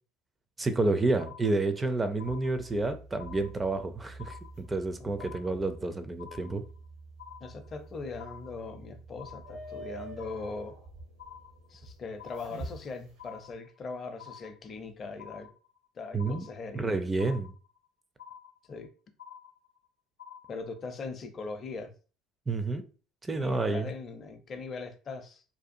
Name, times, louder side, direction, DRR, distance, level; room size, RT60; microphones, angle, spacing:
voice 1, 0.6-6.6 16.1-16.5 16.7-17.5 22.5-22.9 23.2-23.9, right 2 dB, 20° right, 0.4 m, -29 dB
sound 1, 1.2-1.9 2.2-2.9 3.2-3.9 4.2-4.9 5.2-5.9 6.2-6.9 7.2-7.9 8.2-8.9 9.2-9.9 10.2-10.9 11.2-11.9 12.2-12.9 13.2-13.9 14.2-14.9 15.2-15.9 16.2-16.9 17.2-17.9 18.2-18.9 19.2-19.9 20.2-20.9, left 8 dB, 90° left, 0.5 m, -50 dB
sound 2, 2.2-13.5, right 2 dB, 80° right, 1.0 m, -47 dB
voice 2, 7.4-10.8 11.7-15.5 15.9-17.0 18.7-18.9 20.5-21.9 23.4-25.4, left 4 dB, 40° left, 0.5 m, -40 dB
2.6 x 2.3 x 2.5 m
hypercardioid pair, 65°, 0 cm